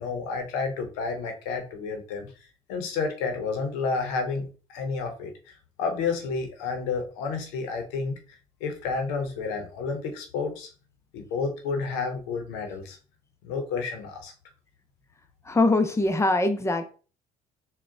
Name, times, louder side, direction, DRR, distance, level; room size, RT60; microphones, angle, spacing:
voice 1, 0.0-2.3 2.7-8.2 8.6-10.7 11.1-13.0 13.4-14.3, left 4 dB, 90° left, 5 dB, 0.8 m, -30 dB
voice 2, 15.5-16.8, left 2 dB, 15° left, 8 dB, 0.7 m, -22 dB
3.7 x 2.3 x 3.6 m, 0.37 s
supercardioid pair, 70°, 17 cm